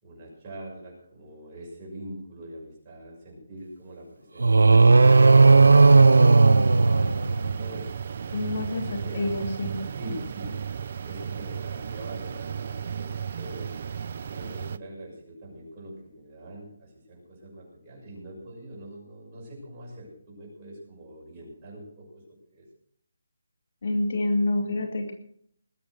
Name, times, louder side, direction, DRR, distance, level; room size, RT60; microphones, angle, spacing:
voice 1, 0.0-6.4 6.7-7.9 8.3-8.4 8.8-9.3 9.9-10.5 11.1-13.7 14.2-22.7, right 1 dB, 20° right, -4 dB, 6.3 m, -43 dB
sound 1, 4.4-7.7, right 3 dB, 90° right, 0.5 m, -15 dB
sound 2, 5.0-14.8, right 7 dB, 40° right, 0.5 m, -35 dB
voice 2, 8.3-8.8 9.2-9.8 23.8-25.1, left 2 dB, 50° left, 5 dB, 2.5 m, -27 dB
20.5 x 7.9 x 6.5 m, 0.64 s
hypercardioid pair, 170°, 0 cm